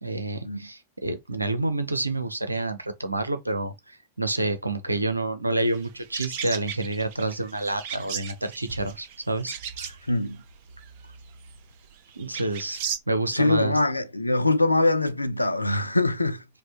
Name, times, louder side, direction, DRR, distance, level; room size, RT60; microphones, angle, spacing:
voice 1, 0.0-10.0 12.2-13.8, right 2 dB, 85° right, 0.6 m, -28 dB
sound 1, 5.6-13.0, right 7 dB, 50° right, 0.8 m, -37 dB
voice 2, 10.1-10.4 13.3-16.4, left 2 dB, 85° left, 0.4 m, -23 dB
5.0 x 2.2 x 3.4 m
figure-of-eight pair, 90°, 0 cm